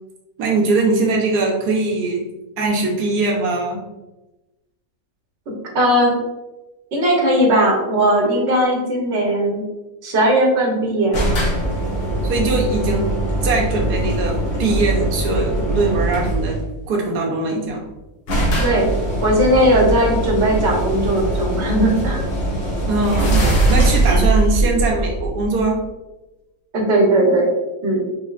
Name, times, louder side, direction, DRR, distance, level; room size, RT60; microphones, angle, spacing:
voice 1, 0.4-2.2 2.6-3.8 12.2-13.1 13.4-16.6 16.9-17.9 22.9-25.8, right 3 dB, 65° right, -1 dB, 1.4 m, -21 dB
voice 2, 5.7-6.2 6.9-9.6 10.0-11.2 18.5-18.9 19.2-22.2 24.1-24.3 26.7-27.5 27.8-28.0, right 1 dB, 45° right, -2 dB, 1.2 m, -17 dB
sound 1, 11.1-16.7 17.7-17.8 17.9-18.0 18.3-25.8, right 1 dB, 85° left, 1.9 m, -21 dB
5.1 x 3.4 x 2.5 m, 1.0 s
omnidirectional pair, 1.9 m